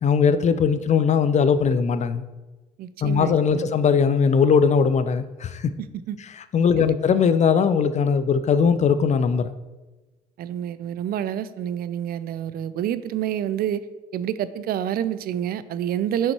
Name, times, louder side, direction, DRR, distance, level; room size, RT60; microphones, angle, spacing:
voice 1, 0.0-2.2 3.0-5.7 6.5-9.5, left 6 dB, 35° left, 12 dB, 0.5 m, -20 dB
voice 2, 2.8-3.7 6.1-6.2 6.7-6.9 10.4-13.8 14.1-16.3, right 10 dB, 50° right, 14 dB, 0.4 m, -28 dB
5.6 x 5.2 x 4.5 m, 1.2 s
hypercardioid pair, 55°, 20 cm